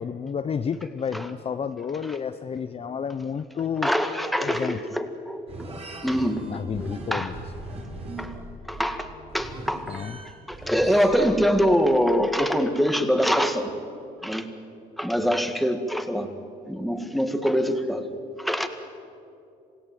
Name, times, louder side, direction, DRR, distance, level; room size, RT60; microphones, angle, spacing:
voice 1, 0.0-3.9 4.4-4.8 6.5-7.3 9.9-10.2, left 7 dB, 35° left, 10 dB, 0.8 m, -30 dB
voice 2, 3.8-5.7 6.0-7.3 8.2-8.4 8.7-10.0 10.5-13.7 14.2-14.5 15.0-16.3 16.7-18.1 18.4-18.7, equal, ahead, 7 dB, 2.0 m, -24 dB
sound 1, 5.5-11.9, right 2 dB, 35° right, 4.3 m, -40 dB
27.5 x 17.0 x 9.2 m, 2.6 s
cardioid pair, 110°, 17 cm